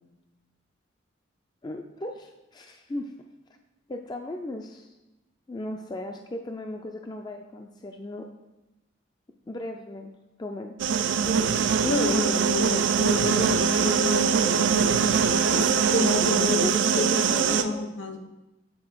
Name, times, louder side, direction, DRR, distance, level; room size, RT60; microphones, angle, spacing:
voice 1, 1.6-3.1 3.9-4.9 5.5-8.3 9.5-10.1 10.4-10.9 16.6-17.8, left 1 dB, 20° left, 4 dB, 0.3 m, -36 dB
sound 1, 10.8-17.6, right 6 dB, 75° right, 0.4 m, -23 dB
voice 2, 11.8-15.2 15.5-16.6 17.0-17.2 17.5-18.2, left 2 dB, 70° left, 5 dB, 1.0 m, -29 dB
8.5 x 4.1 x 4.6 m, 1.0 s
head